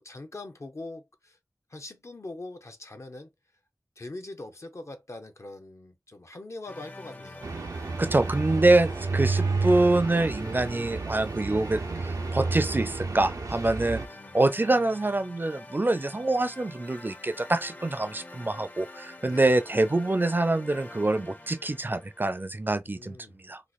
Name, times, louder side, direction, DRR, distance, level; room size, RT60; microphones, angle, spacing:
voice 1, 0.0-1.4 1.7-3.3 4.0-7.5 13.7-14.4 19.2-19.6 22.8-23.4, left 2 dB, 55° left, 0.8 m, -43 dB
sound 1, 6.7-22.5, left 2 dB, 25° left, 0.6 m, -46 dB
sound 2, 7.4-14.1, right 3 dB, 85° right, 0.5 m, -31 dB
voice 2, 8.0-14.0 14.3-23.2 23.4-23.6, right 2 dB, 35° right, 0.5 m, -25 dB
3.1 x 2.1 x 4.0 m
wide cardioid pair, 45°, 6 cm